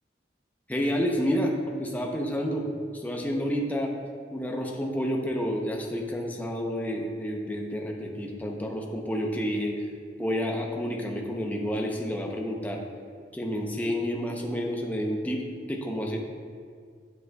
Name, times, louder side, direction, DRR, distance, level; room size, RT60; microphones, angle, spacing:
voice 1, 0.7-3.9 4.3-9.9 10.2-12.8 13.3-15.4 15.7-16.2, equal, 10° left, 0 dB, 0.6 m, -29 dB
8.1 x 7.8 x 2.2 m, 2.1 s
head